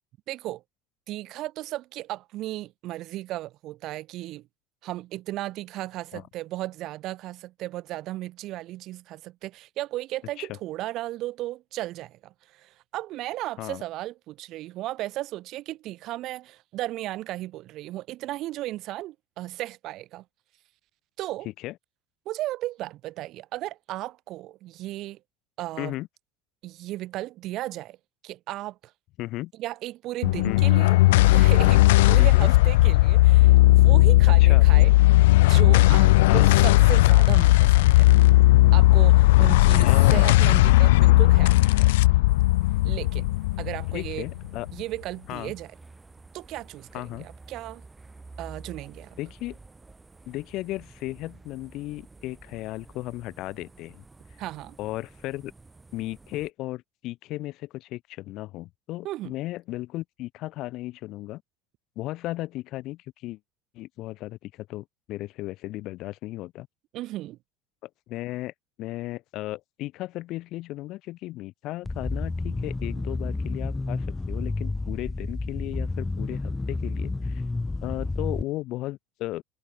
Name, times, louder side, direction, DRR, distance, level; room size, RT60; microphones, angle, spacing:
voice 1, 0.3-0.6 1.1-4.5 4.8-20.2 21.2-21.5 22.2-25.2 25.6-25.9 26.6-28.0 28.2-28.8 29.6-34.9 35.3-38.1 38.7-42.2 42.8-43.3 43.6-44.3 44.7-45.7 46.3-47.8 48.4-49.2 54.4-54.7 59.0-59.3 66.9-67.4, right 16 dB, 60° right, 1.4 m, -35 dB
voice 2, 29.2-29.5 30.4-30.7 32.2-32.5 34.4-34.7 36.3-36.5 39.8-40.4 43.9-44.7 45.3-45.5 46.9-47.3 49.2-49.6 50.3-54.0 54.8-55.5 55.9-61.4 62.0-63.4 63.7-66.7 67.8-68.5 68.8-77.4 77.8-79.4, left 17 dB, 60° left, 4.2 m, -35 dB
sound 1, 30.2-44.8, left 19 dB, 85° left, 0.5 m, -17 dB
sound 2, 42.3-56.5, right 3 dB, 15° right, 5.9 m, -50 dB
sound 3, 71.8-78.4, left 3 dB, 15° left, 0.4 m, -30 dB
supercardioid pair, 100°, 0 cm